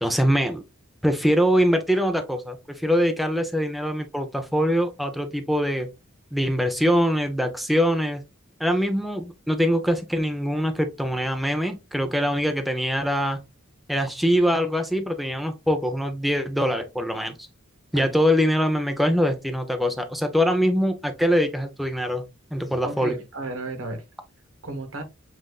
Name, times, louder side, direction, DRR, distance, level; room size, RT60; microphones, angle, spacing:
voice 1, 0.0-0.6 1.0-5.9 6.3-8.2 8.6-13.4 13.9-17.3 17.9-22.2 22.5-23.2, equal, ahead, 0.5 m, -23 dB
voice 2, 22.8-24.0 24.6-25.0, right 2 dB, 80° right, 1.2 m, -33 dB
7.4 x 2.5 x 2.3 m
head